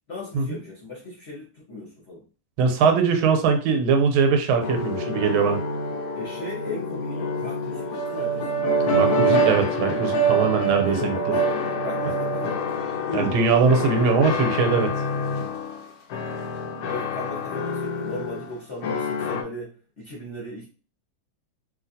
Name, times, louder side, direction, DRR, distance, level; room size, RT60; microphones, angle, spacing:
voice 1, 0.1-2.2 6.1-8.6 10.8-12.7 16.8-20.6, left 1 dB, 50° left, -5 dB, 0.8 m, -37 dB
voice 2, 2.6-5.6 8.9-11.1 13.1-14.9, right 5 dB, 90° right, 4 dB, 1.5 m, -21 dB
sound 1, 4.6-15.8 16.1-18.5 18.8-19.4, right 1 dB, 85° left, 0.8 m, -26 dB
3.1 x 2.8 x 2.6 m, 0.37 s
omnidirectional pair, 2.2 m